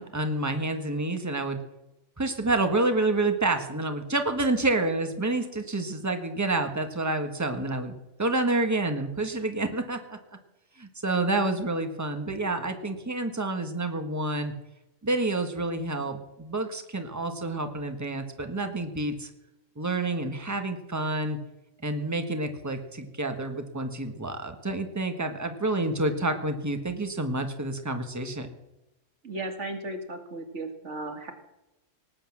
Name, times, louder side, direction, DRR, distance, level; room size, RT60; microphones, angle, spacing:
voice 1, 0.0-1.6 2.2-10.2 10.8-14.5 15.0-19.3 19.8-21.4 21.8-28.5, right 2 dB, 15° right, 6 dB, 1.5 m, -28 dB
voice 2, 29.2-31.3, right 2 dB, 65° right, 5 dB, 2.4 m, -35 dB
19.0 x 8.7 x 7.3 m, 0.95 s
omnidirectional pair, 1.3 m